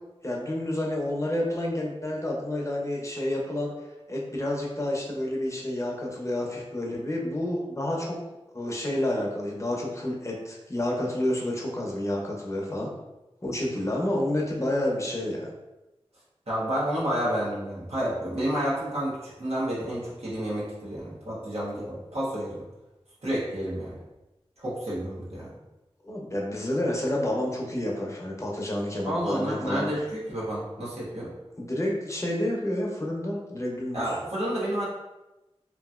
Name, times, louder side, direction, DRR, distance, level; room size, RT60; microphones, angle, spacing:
voice 1, 0.2-3.7 4.1-8.2 8.5-12.9 13.4-15.5 26.0-29.9 31.6-34.2, left 1 dB, 30° left, -2 dB, 0.7 m, -29 dB
voice 2, 16.5-22.6 23.2-24.0 24.6-25.5 29.0-31.3 33.9-34.9, equal, 75° right, -8 dB, 1.1 m, -30 dB
2.9 x 2.6 x 2.4 m, 1.0 s
wide cardioid pair, 55°, 11 cm